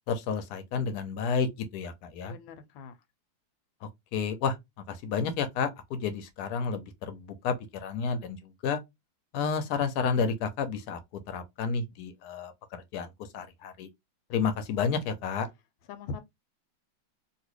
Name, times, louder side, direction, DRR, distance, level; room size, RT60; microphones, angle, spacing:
voice 1, 0.1-2.3 3.8-8.8 9.3-11.0 11.3-13.9 14.3-15.5, left 5 dB, 65° left, 1.0 m, -31 dB
voice 2, 2.3-2.9 15.9-16.2, left 4 dB, 85° left, 1.4 m, -40 dB
3.0 x 2.7 x 3.0 m
omnidirectional pair, 2.1 m